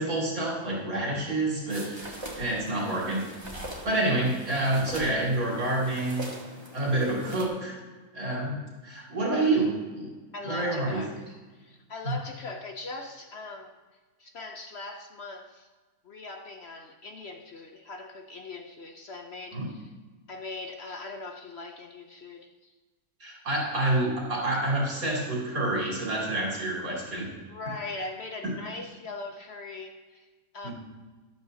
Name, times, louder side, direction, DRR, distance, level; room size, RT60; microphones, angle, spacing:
voice 1, 0.0-3.3 3.8-6.3 6.7-7.8 8.1-10.1 10.4-11.0 12.0-12.1 19.5-19.7 23.2-27.3 28.4-28.5 30.6-30.7, right 2 dB, 65° right, -4 dB, 3.5 m, -28 dB
sound 1, 1.7-7.5, right 1 dB, 20° right, 1.6 m, -42 dB
voice 2, 10.3-11.2 11.5-13.7 14.2-15.7 16.0-19.9 20.3-22.7 27.5-30.3 30.5-30.7, left 3 dB, 55° left, 4 dB, 0.8 m, -40 dB
12.5 x 12.0 x 2.8 m, 1.3 s
omnidirectional pair, 1.6 m